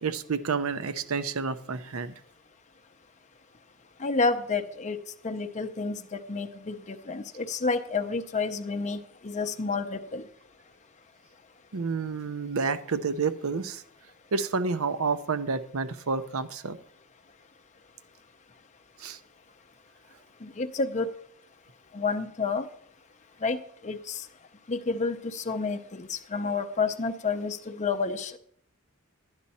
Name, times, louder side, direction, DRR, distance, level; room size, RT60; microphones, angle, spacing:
voice 1, 0.0-2.1 11.7-13.8 14.3-16.8 19.0-19.2, right 4 dB, 65° right, 12 dB, 0.7 m, -29 dB
voice 2, 4.0-5.0 5.2-10.2 20.4-21.1 21.9-22.7 23.4-24.3 24.7-28.4, left 4 dB, 30° left, 7 dB, 0.6 m, -30 dB
12.0 x 9.6 x 4.2 m, 0.66 s
head